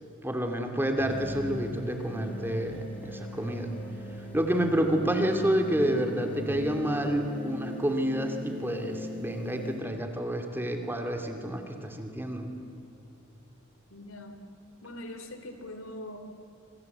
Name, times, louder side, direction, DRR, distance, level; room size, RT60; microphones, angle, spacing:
voice 1, 0.2-3.7 4.3-12.5, right 1 dB, 10° right, 3 dB, 2.6 m, -29 dB
sound 1, 1.0-7.1, right 1 dB, 35° left, 3.9 m, -42 dB
sound 2, 1.0-9.8, left 2 dB, 10° left, 4.5 m, -42 dB
voice 2, 13.9-14.4 14.8-16.2, left 1 dB, 85° left, 7 dB, 3.0 m, -42 dB
27.0 x 25.0 x 8.1 m, 2.6 s
head